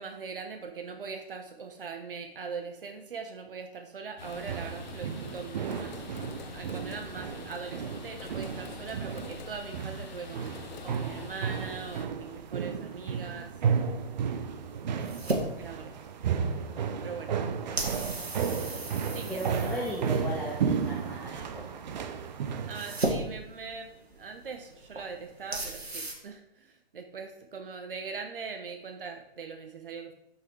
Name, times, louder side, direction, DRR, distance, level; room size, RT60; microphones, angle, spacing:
voice 1, 0.0-6.0 6.5-13.5 15.6-16.1 17.0-17.4 19.1-19.7 22.7-30.1, right 5 dB, 60° right, 5 dB, 1.3 m, -41 dB
sound 1, 4.2-12.1, left 6 dB, 45° left, 1.2 m, -45 dB
sound 2, 4.2-23.0, right 6 dB, 45° right, 0.8 m, -33 dB
sound 3, 11.9-26.1, right 2 dB, 80° right, 2.3 m, -38 dB
voice 2, 19.3-21.7, equal, 5° left, -3 dB, 1.1 m, -36 dB
12.5 x 5.5 x 4.8 m, 0.82 s
figure-of-eight pair, 120°, 31 cm